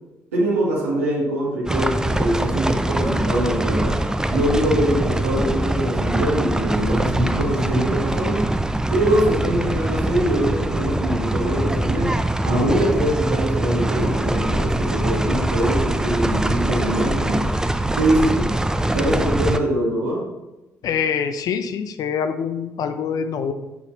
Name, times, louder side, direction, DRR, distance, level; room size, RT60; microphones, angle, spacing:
voice 1, 0.3-4.0 4.3-8.5 8.9-12.2 12.4-17.5 17.9-18.6 18.9-20.3, right 1 dB, 85° right, -3 dB, 1.4 m, -23 dB
sound 1, 1.7-19.6, right 1 dB, 10° right, 0.5 m, -23 dB
voice 2, 20.8-23.5, left 7 dB, 55° left, 9 dB, 0.6 m, -25 dB
10.5 x 4.1 x 2.8 m, 1.0 s
hypercardioid pair, 45°, 7 cm